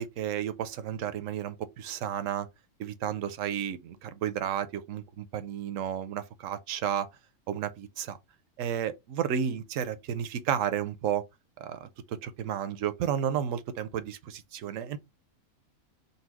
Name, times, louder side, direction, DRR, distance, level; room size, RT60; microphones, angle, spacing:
voice 1, 0.0-2.5 2.8-7.1 7.5-8.2 8.6-11.2 11.6-15.0, right 9 dB, 70° right, 0.9 m, -32 dB
4.0 x 2.3 x 4.5 m
omnidirectional pair, 1.5 m